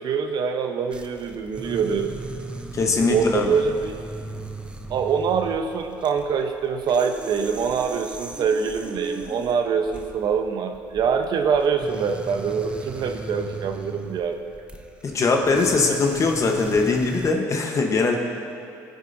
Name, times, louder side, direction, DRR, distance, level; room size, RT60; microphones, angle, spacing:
voice 1, 0.0-2.2 3.1-4.0 4.9-14.4, right 6 dB, 55° right, 5 dB, 0.8 m, -24 dB
sound 1, 0.9-17.3, right 2 dB, 10° right, 0.6 m, -38 dB
voice 2, 2.7-3.5 15.0-18.2, left 4 dB, 35° left, 2 dB, 1.0 m, -21 dB
17.5 x 6.6 x 2.7 m, 2.7 s
supercardioid pair, 90°, 9 cm